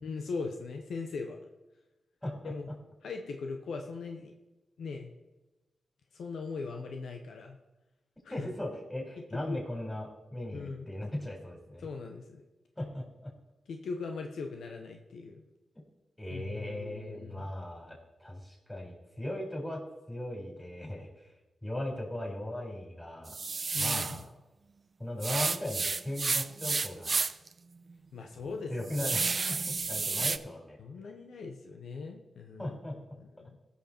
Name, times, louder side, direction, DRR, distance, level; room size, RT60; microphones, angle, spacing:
voice 1, 0.0-1.4 2.4-2.7 3.0-4.3 4.8-5.1 6.1-7.6 8.2-8.5 9.2-9.6 10.5-10.9 11.8-12.4 13.7-15.4 16.3-17.5 23.7-24.2 28.1-28.9 29.3-29.6 30.8-32.8 33.1-33.6, left 4 dB, 80° left, 4 dB, 0.8 m, -40 dB
voice 2, 2.2-2.7 8.3-11.9 12.8-13.3 16.2-19.8 20.1-21.1 21.6-23.4 23.8-24.2 25.0-27.2 28.7-30.8 32.6-33.0, left 1 dB, 15° left, 0 dB, 4.3 m, -38 dB
sound 1, 23.3-24.2 25.2-27.5 27.9-28.0 28.5-30.4, right 4 dB, 50° right, 0.4 m, -31 dB
16.0 x 5.8 x 4.4 m, 1.1 s
supercardioid pair, 45°, 0 cm